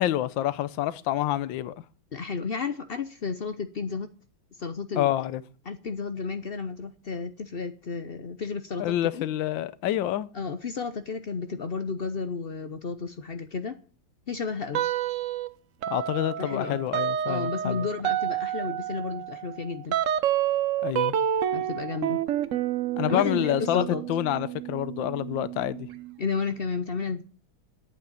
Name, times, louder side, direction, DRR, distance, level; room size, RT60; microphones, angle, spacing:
voice 1, 0.0-1.7 4.9-5.4 8.8-10.3 15.9-17.9 20.8-21.2 23.0-25.9, left 13 dB, 70° left, 1.5 m, -27 dB
voice 2, 2.1-4.1 4.6-5.1 5.7-9.3 10.3-13.8 14.3-14.8 16.4-16.8 17.3-20.0 21.5-22.2 23.1-24.0 26.2-27.2, left 5 dB, 90° left, 0.5 m, -32 dB
sound 1, 14.7-15.5 15.8-26.2, right 11 dB, 70° right, 0.7 m, -29 dB
10.5 x 8.7 x 9.0 m
omnidirectional pair, 2.2 m